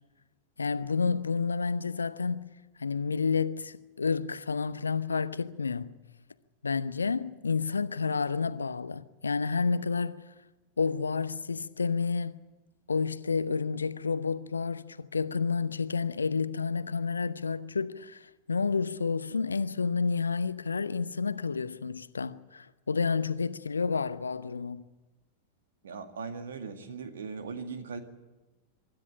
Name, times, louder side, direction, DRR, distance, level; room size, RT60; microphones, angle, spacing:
voice 1, 0.6-2.5 2.8-5.9 6.6-10.2 10.8-12.4 12.9-24.8, left 5 dB, 75° left, 0.8 m, -30 dB
voice 2, 25.8-28.0, right 5 dB, 65° right, 2.1 m, -39 dB
24.5 x 13.0 x 10.0 m
figure-of-eight pair, 90°, 0 cm